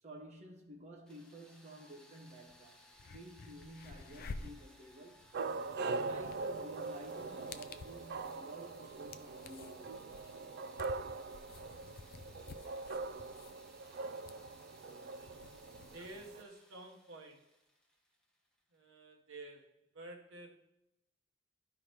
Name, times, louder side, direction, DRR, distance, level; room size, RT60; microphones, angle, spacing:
voice 1, 0.0-2.8 3.1-5.3 5.7-10.1, right 1 dB, 35° right, 1.2 m, -52 dB
sound 1, 1.0-18.8, equal, 5° left, 1.3 m, -63 dB
sound 2, 2.5-2.6 2.9-16.3, left 4 dB, 50° left, 0.4 m, -52 dB
sound 3, 5.3-16.4, right 3 dB, 55° right, 0.3 m, -42 dB
voice 2, 15.9-17.5 18.7-20.5, right 2 dB, 85° right, 1.1 m, -51 dB
12.0 x 5.0 x 3.0 m
head